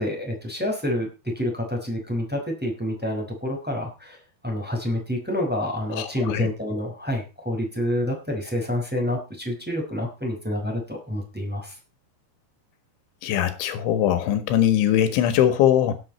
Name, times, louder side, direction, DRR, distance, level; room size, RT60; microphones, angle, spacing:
voice 1, 0.0-4.2 4.4-11.7, left 1 dB, ahead, 1 dB, 4.8 m, -28 dB
voice 2, 5.9-6.5 13.2-15.9, left 10 dB, 85° left, 10 dB, 3.9 m, -21 dB
17.5 x 9.2 x 4.3 m, 0.30 s
omnidirectional pair, 5.2 m